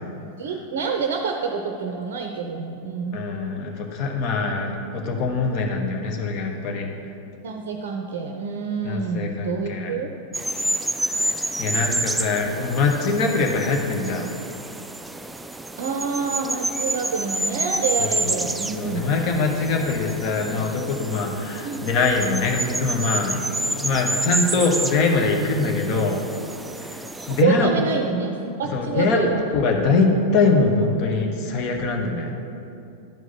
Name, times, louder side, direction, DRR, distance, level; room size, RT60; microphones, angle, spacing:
voice 1, 0.4-3.2 7.4-10.1 13.9-14.1 15.8-19.1 21.6-21.9 27.3-29.4, right 5 dB, 55° right, 4 dB, 0.6 m, -27 dB
voice 2, 3.1-6.9 8.8-9.9 11.6-14.2 18.0-18.4 18.7-26.2 27.3-27.7 28.7-29.3 29.5-32.3, left 3 dB, 40° left, 2 dB, 1.2 m, -23 dB
sound 1, 10.3-27.4, right 2 dB, 5° right, 0.3 m, -29 dB
10.5 x 4.9 x 6.0 m, 2.7 s
figure-of-eight pair, 90°, 0 cm